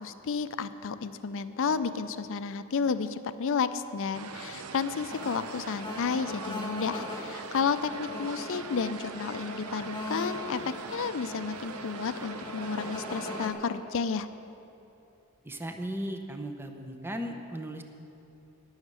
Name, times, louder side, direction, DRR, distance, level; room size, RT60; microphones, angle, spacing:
voice 1, 0.0-14.3, left 5 dB, 60° left, 12 dB, 0.5 m, -32 dB
sound 1, 4.1-13.5, right 5 dB, 85° right, 0.6 m, -42 dB
sound 2, 5.1-13.5, left 2 dB, 20° left, 1.8 m, -40 dB
voice 2, 15.4-17.8, equal, 10° right, 5 dB, 0.7 m, -36 dB
11.5 x 6.5 x 9.4 m, 2.8 s
head